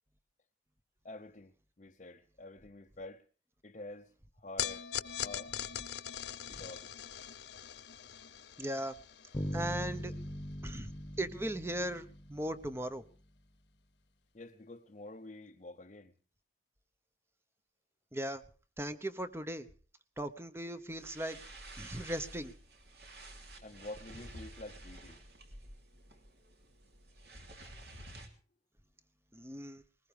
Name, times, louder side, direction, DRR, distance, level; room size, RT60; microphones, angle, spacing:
voice 1, 1.0-1.5 1.8-3.2 3.6-4.1 4.4-5.5 6.5-6.9 14.3-16.1 23.6-25.2, left 2 dB, 40° left, 0.8 m, -48 dB
sound 1, 4.6-11.0, left 10 dB, 75° left, 0.7 m, -42 dB
voice 2, 8.6-8.9 9.5-10.1 10.6-10.9 11.2-13.0 18.1-18.4 18.8-19.7 20.2-21.4 21.8-22.5 29.3-29.8, right 1 dB, 15° right, 0.9 m, -38 dB
sound 2, 9.3-13.1, equal, 25° left, 1.1 m, -41 dB
sound 3, 20.9-28.3, right 1 dB, 60° right, 3.1 m, -51 dB
20.5 x 19.5 x 3.4 m
head